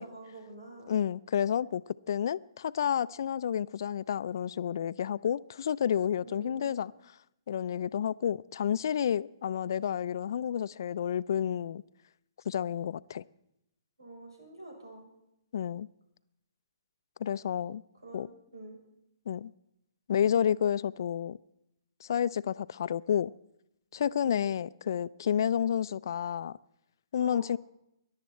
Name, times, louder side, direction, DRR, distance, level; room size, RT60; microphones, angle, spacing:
voice 1, 0.0-0.9 6.2-6.9 14.0-15.1 18.0-18.8 24.2-24.5 27.1-27.4, right 2 dB, 90° right, 7.0 m, -47 dB
voice 2, 0.9-1.8 2.1-6.9 7.5-11.8 12.5-13.2 15.5-15.9 17.2-17.8 18.1-18.3 19.3-19.5 20.1-21.4 22.0-23.3 23.9-26.6 27.1-27.6, left 9 dB, 60° left, 0.4 m, -30 dB
21.5 x 11.5 x 4.4 m
hypercardioid pair, 135°, 2 cm